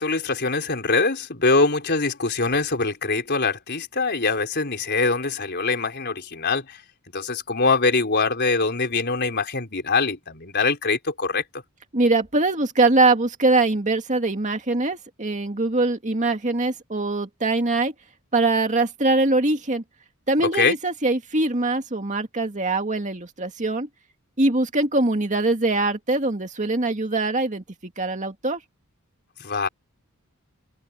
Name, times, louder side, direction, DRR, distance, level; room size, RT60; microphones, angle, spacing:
voice 1, 0.0-6.8 7.1-11.6 20.4-20.8 29.4-29.7, left 3 dB, 50° left, 4.3 m, -23 dB
voice 2, 11.9-17.9 18.3-19.8 20.3-23.9 24.4-27.6 28.0-28.6, right 2 dB, 35° right, 2.2 m, -22 dB
head